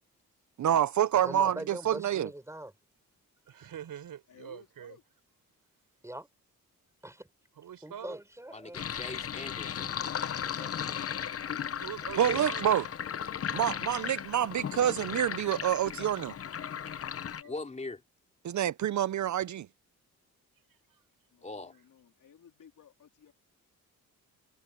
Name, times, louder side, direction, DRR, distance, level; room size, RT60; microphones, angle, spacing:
voice 1, 0.6-2.3 12.2-12.8 13.5-16.3 18.4-19.7, right 10 dB, 60° right, 0.6 m, -27 dB
voice 2, 1.2-2.7 6.0-6.3 7.0-7.3 7.8-8.8 10.6-10.7, right 1 dB, 10° right, 5.7 m, -42 dB
voice 3, 3.5-5.0 7.6-8.2 11.8-12.9 16.6-17.0 17.3-17.4 20.9-21.0, right 9 dB, 80° right, 6.5 m, -44 dB
voice 4, 4.3-5.0 10.4-11.4 17.3-17.8 21.3-23.3, left 8 dB, 65° left, 3.7 m, -56 dB
voice 5, 8.5-9.9 17.5-18.0 21.4-21.7, left 3 dB, 20° left, 3.3 m, -41 dB
Sink (filling or washing), 8.7-17.4, left 8 dB, 45° left, 0.8 m, -36 dB
cardioid pair, 105°, 34 cm